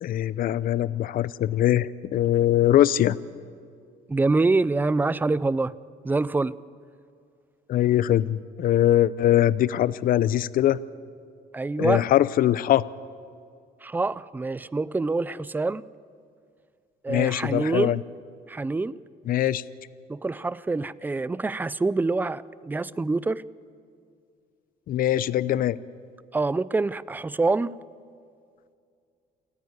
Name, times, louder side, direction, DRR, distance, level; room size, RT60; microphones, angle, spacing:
voice 1, 0.0-3.2 7.7-10.8 11.8-12.8 17.1-18.0 19.3-19.6 24.9-25.8, left 12 dB, 55° left, 18 dB, 0.6 m, -22 dB
voice 2, 4.1-5.7 6.0-6.6 11.5-12.1 13.8-15.8 17.0-18.0 18.5-19.0 20.1-23.4 26.3-27.7, right 3 dB, 10° right, 19 dB, 0.4 m, -25 dB
28.0 x 9.7 x 9.7 m, 2.3 s
cardioid pair, 110°, 17 cm